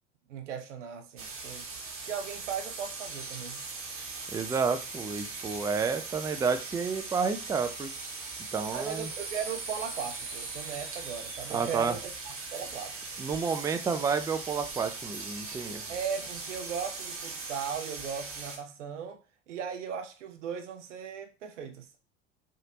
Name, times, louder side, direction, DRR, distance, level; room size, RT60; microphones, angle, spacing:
voice 1, 0.3-1.7 2.0-3.6 8.7-13.0 15.9-19.2 19.5-21.9, right 7 dB, 85° right, 0.6 m, -37 dB
sound 1, 1.2-18.6, right 4 dB, 40° right, 1.1 m, -40 dB
voice 2, 4.3-7.9 8.5-9.1 11.5-12.0 13.2-15.8, right 5 dB, 10° right, 0.4 m, -30 dB
3.3 x 2.8 x 2.7 m
hypercardioid pair, 70°, 36 cm